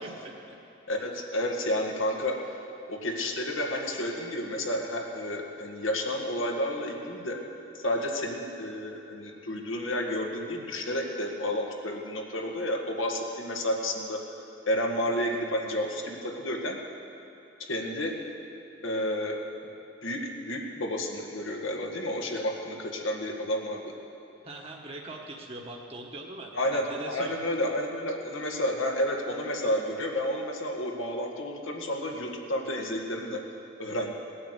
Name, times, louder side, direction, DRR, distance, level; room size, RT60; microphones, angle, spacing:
voice 1, 0.0-0.5 1.0-1.2 24.4-27.3, right 2 dB, 30° right, -1 dB, 1.2 m, -42 dB
voice 2, 0.9-2.6 2.9-7.4 7.7-14.2 14.7-16.8 17.6-18.1 18.8-19.4 20.0-23.9 26.5-33.4 33.8-34.1, left 1 dB, 85° left, 1 dB, 1.9 m, -31 dB
18.5 x 8.6 x 8.1 m, 2.8 s
head